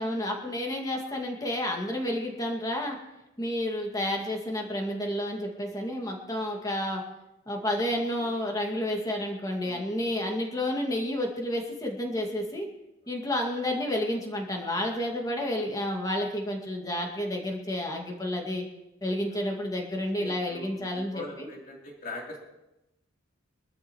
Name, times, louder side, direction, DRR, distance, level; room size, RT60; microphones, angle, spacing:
voice 1, 0.0-3.0 3.4-7.0 7.5-12.7 13.1-18.7 19.0-21.5, left 1 dB, 20° left, 1 dB, 2.1 m, -30 dB
voice 2, 1.1-1.5 7.9-8.4 9.6-10.1 13.0-13.1 15.1-15.2 19.3-19.5 20.2-22.4, left 1 dB, 45° left, -2 dB, 3.5 m, -43 dB
23.5 x 13.0 x 3.1 m, 0.94 s
head